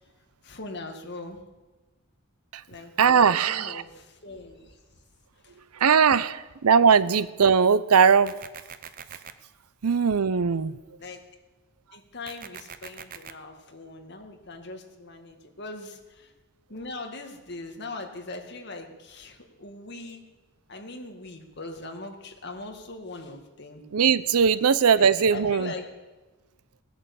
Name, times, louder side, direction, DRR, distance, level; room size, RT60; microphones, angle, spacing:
voice 1, 0.4-1.4 2.7-4.8 5.3-5.6 11.0-11.2 11.9-16.3 16.7-20.2 20.7-23.8 25.0-25.9, left 2 dB, 50° left, 4 dB, 1.9 m, -41 dB
voice 2, 3.0-3.8 5.7-8.4 9.8-10.8 23.9-25.7, right 6 dB, 85° right, 16 dB, 0.6 m, -20 dB
sound 1, 8.3-9.3 12.3-13.3, right 7 dB, 40° right, 0.6 m, -42 dB
19.0 x 8.7 x 7.1 m, 1.2 s
head